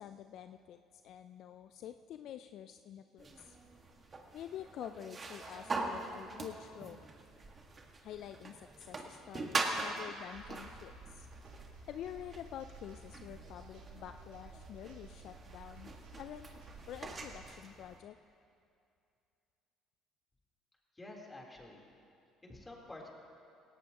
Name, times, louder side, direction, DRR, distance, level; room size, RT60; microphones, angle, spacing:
voice 1, 0.0-3.6 4.3-7.1 8.0-11.3 11.9-16.5 16.9-18.2, left 10 dB, 65° left, 9 dB, 0.4 m, -48 dB
sound 1, 3.2-18.0, right 3 dB, 35° right, 1.8 m, -43 dB
sound 2, 10.3-17.5, right 3 dB, 80° right, 3.3 m, -54 dB
voice 2, 20.9-21.8 22.4-23.1, left 2 dB, 20° left, -2 dB, 3.7 m, -49 dB
17.5 x 17.0 x 3.0 m, 2.5 s
hypercardioid pair, 65°, 0 cm